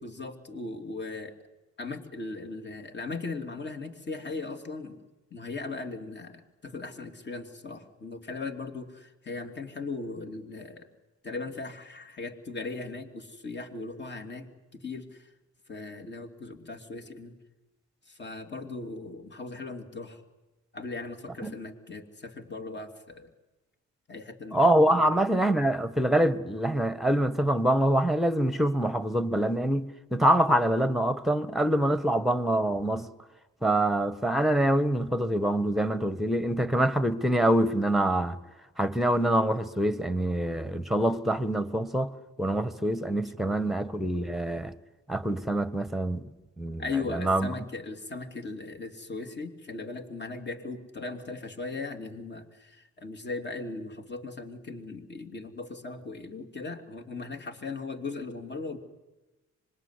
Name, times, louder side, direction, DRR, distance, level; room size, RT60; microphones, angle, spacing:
voice 1, 0.0-1.4 1.8-5.0 5.3-10.9 11.2-15.3 15.7-17.4 18.1-20.2 20.7-23.3 24.1-24.6 24.9-25.1 43.3-43.7 46.8-58.8, left 3 dB, 35° left, 3.1 m, -38 dB
voice 2, 24.5-33.1 33.6-38.4 38.8-44.7 45.1-46.2 46.6-47.5, right 1 dB, ahead, 1.5 m, -25 dB
25.0 x 21.5 x 9.9 m
cardioid pair, 90°, 30 cm